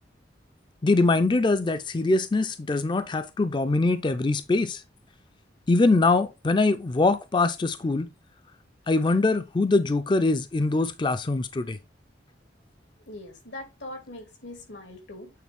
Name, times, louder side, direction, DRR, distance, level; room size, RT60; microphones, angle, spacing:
voice 1, 0.8-4.8 5.7-8.1 8.9-11.8, left 3 dB, 25° left, 0.4 m, -23 dB
voice 2, 13.1-15.3, left 1 dB, 85° left, 2.4 m, -41 dB
8.5 x 3.8 x 3.5 m
head